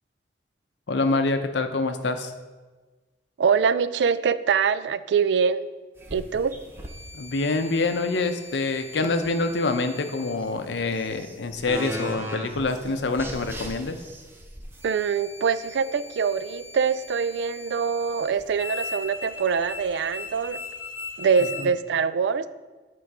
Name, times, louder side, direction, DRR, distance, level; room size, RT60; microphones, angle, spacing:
voice 1, 0.9-2.3 7.1-14.0 21.6-21.7, left 3 dB, 75° left, 8 dB, 0.6 m, -26 dB
voice 2, 3.4-5.6 6.1-6.6 14.8-20.6 21.2-22.5, right 6 dB, 75° right, 15 dB, 0.3 m, -24 dB
sound 1, 6.0-21.7, left 2 dB, 15° right, 0.6 m, -39 dB
8.9 x 3.8 x 4.7 m, 1.3 s
head